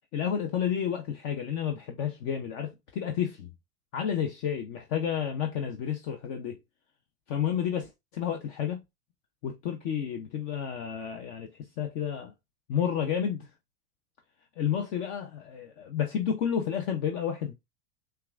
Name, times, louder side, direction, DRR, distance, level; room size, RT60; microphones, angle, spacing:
voice 1, 0.1-3.5 3.9-6.6 7.3-8.8 9.4-12.3 12.7-13.5 14.6-17.5, left 8 dB, 50° left, 0.7 m, -31 dB
5.7 x 2.4 x 2.4 m
hypercardioid pair, 115°, 47 cm